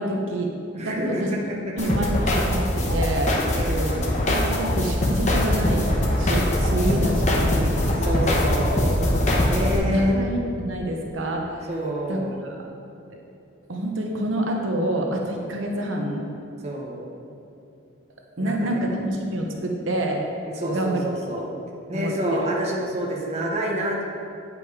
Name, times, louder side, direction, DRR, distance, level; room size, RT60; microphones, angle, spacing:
voice 1, 0.0-1.3 1.8-3.6 4.2-5.9 6.2-7.8 9.6-11.7 12.1-12.7 13.7-16.3 18.4-20.2 20.7-21.1 21.4-21.6 21.9-22.1, right 1 dB, 75° right, 1 dB, 1.0 m, -27 dB
voice 2, 0.7-1.2 1.5-1.6 3.5-4.0 6.7-7.2 8.0-9.0 9.4-10.2 11.7-12.4 16.6-17.1 18.4-18.8 20.4-21.4 21.9-24.0, right 1 dB, 30° right, -2 dB, 0.9 m, -28 dB
sound 1, 1.8-9.8, left 1 dB, 35° left, 0.9 m, -22 dB
8.7 x 5.3 x 4.8 m, 2.7 s
head